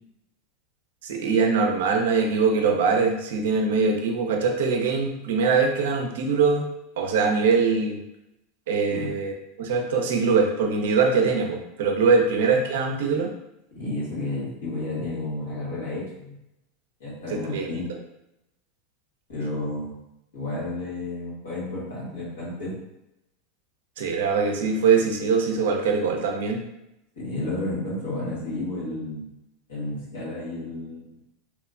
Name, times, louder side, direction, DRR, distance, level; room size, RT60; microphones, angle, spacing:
voice 1, 1.0-6.7 7.0-8.0 8.7-9.3 9.6-13.3 17.3-17.7 24.0-26.6, right 5 dB, 75° right, 3 dB, 0.4 m, -22 dB
voice 2, 13.7-16.3 17.0-17.9 19.3-20.0 20.3-22.8 27.1-29.3 29.7-31.1, left 2 dB, 90° left, -8 dB, 1.4 m, -31 dB
2.9 x 2.1 x 2.4 m, 0.86 s
hypercardioid pair, 100°, 0 cm